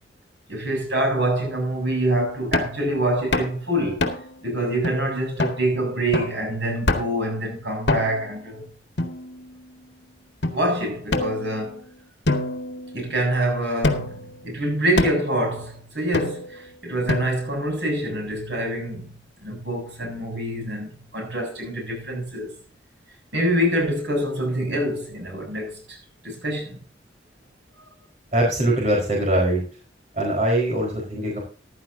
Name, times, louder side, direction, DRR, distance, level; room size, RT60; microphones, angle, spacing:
voice 1, 0.5-4.1 4.4-8.6 10.5-11.8 12.9-19.1 19.4-22.5 23.3-26.0 26.2-26.8, right 1 dB, 80° right, 7.7 m, -25 dB
sound 1, 2.5-2.8 3.3-3.6 4.0-4.4 4.8-4.9 5.4-5.6 6.1-6.4 6.9-7.2 7.9-8.3 9.0-9.7 10.4-10.5 11.1-11.8 12.3-13.3 13.8-14.3 15.0-15.3 16.1-16.6 17.1-17.6, left 2 dB, 70° left, 1.9 m, -25 dB
voice 2, 28.3-29.6 30.1-31.4, right 1 dB, 40° right, 4.6 m, -22 dB
14.5 x 12.0 x 2.8 m
head